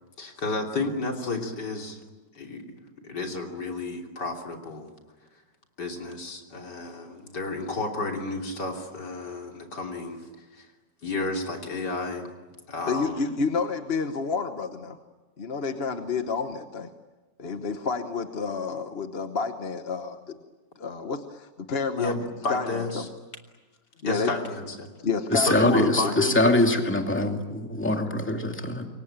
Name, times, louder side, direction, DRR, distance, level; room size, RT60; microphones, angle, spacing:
voice 1, 0.2-2.0 2.4-2.7 3.0-4.9 5.8-10.3 10.5-10.7 11.0-12.3 12.7-13.3 22.0-23.1 24.0-24.9 25.4-26.5, left 2 dB, 70° left, 2 dB, 3.8 m, -31 dB
voice 2, 12.9-15.0 15.4-16.9 17.4-20.4 20.8-22.2 22.5-23.1 24.0-24.3 25.0-26.4, left 4 dB, 40° left, 7 dB, 1.2 m, -29 dB
voice 3, 25.3-28.9, left 1 dB, 5° left, 3 dB, 2.4 m, -23 dB
28.0 x 23.5 x 8.9 m, 1.2 s
omnidirectional pair, 1.9 m